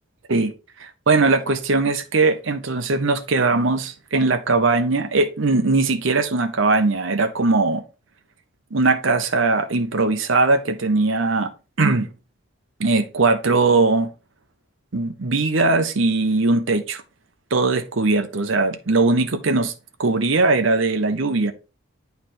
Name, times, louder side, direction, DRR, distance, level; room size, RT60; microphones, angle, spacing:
voice 1, 0.8-7.8 8.7-11.5 11.8-12.1 12.8-14.1 14.9-17.0 17.5-19.7 20.0-21.5, right 3 dB, 65° right, 0.8 m, -20 dB
9.2 x 3.4 x 4.3 m
head